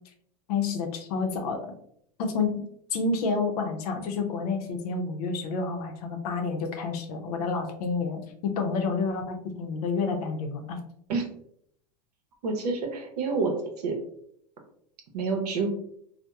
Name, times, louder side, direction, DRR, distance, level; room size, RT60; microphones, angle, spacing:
voice 1, 0.5-1.6 2.2-2.6 2.9-10.8, left 4 dB, 70° left, 4 dB, 0.6 m, -29 dB
voice 2, 12.4-14.0 15.1-15.7, right 4 dB, 80° right, 3 dB, 0.7 m, -28 dB
2.8 x 2.1 x 2.3 m, 0.69 s
hypercardioid pair, 105°, 20 cm